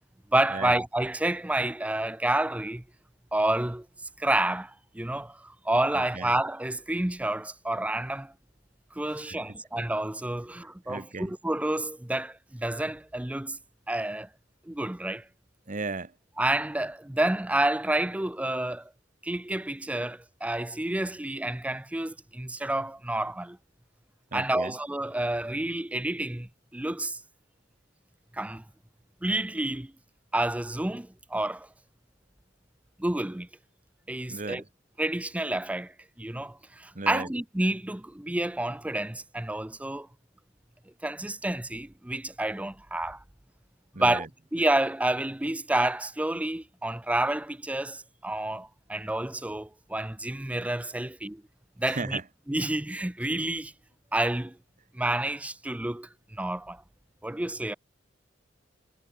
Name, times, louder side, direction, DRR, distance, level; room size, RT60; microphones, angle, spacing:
voice 1, 0.3-2.8 3.3-3.9 4.2-8.3 9.0-13.6 13.9-14.3 14.7-15.2 16.4-18.9 19.2-23.6 24.3-27.2 28.3-28.6 29.2-29.9 30.3-31.7 33.0-33.5 34.1-34.6 35.0-40.1 41.0-43.2 44.0-44.3 44.5-51.4 51.8-52.2 52.5-53.7 54.1-54.6 54.9-56.8 57.2-57.7, right 1 dB, 5° right, 0.5 m, -29 dB
voice 2, 5.9-6.3 9.1-9.6 10.9-11.3 15.7-16.1 24.3-24.7 34.3-34.6 36.9-37.3 43.9-44.3 51.9-52.2, right 3 dB, 40° right, 1.3 m, -36 dB
head